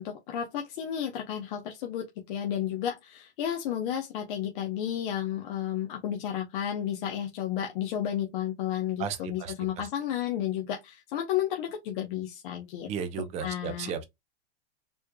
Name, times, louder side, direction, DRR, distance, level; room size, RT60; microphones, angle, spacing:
voice 1, 0.0-12.9 13.4-13.9, left 10 dB, 45° left, 0.9 m, -32 dB
voice 2, 9.0-9.5 12.9-14.0, right 7 dB, 20° right, 0.5 m, -34 dB
4.2 x 3.3 x 2.2 m
supercardioid pair, 155°, 34 cm